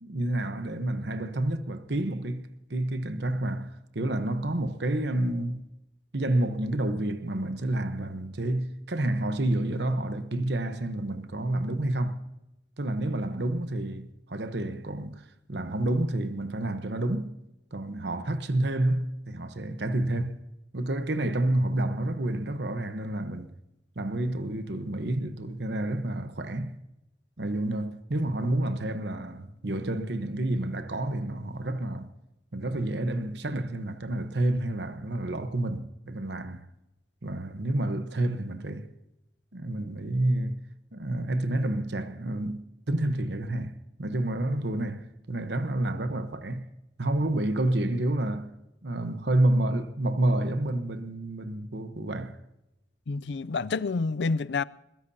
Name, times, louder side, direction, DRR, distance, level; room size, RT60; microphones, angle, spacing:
voice 1, 0.0-5.7 6.1-12.2 12.8-15.2 15.5-17.3 17.7-20.4 20.7-23.5 24.0-26.8 27.4-32.1 32.5-36.7 37.2-38.9 39.5-40.6 40.9-46.7 47.0-48.5 48.8-52.4, right 1 dB, 60° right, 1.1 m, -29 dB
voice 2, 53.1-54.6, left 4 dB, 65° left, 0.5 m, -28 dB
22.0 x 22.0 x 2.8 m
head